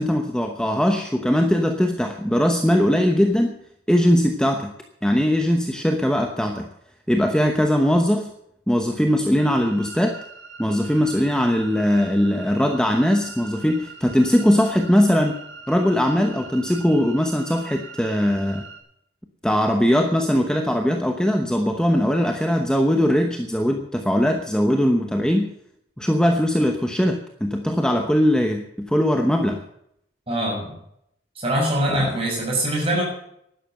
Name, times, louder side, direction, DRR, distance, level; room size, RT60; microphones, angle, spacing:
voice 1, 0.0-3.6 3.9-4.7 5.0-6.7 7.1-8.3 8.7-10.2 10.6-15.3 15.7-18.6 19.4-25.5 26.0-29.6 31.9-32.1, equal, 5° left, 4 dB, 0.9 m, -20 dB
sound 1, 9.4-18.8, right 4 dB, 80° right, 4.0 m, -42 dB
voice 2, 30.3-30.7 31.4-33.0, right 1 dB, 30° right, -2 dB, 7.1 m, -23 dB
12.0 x 11.0 x 7.7 m, 0.73 s
head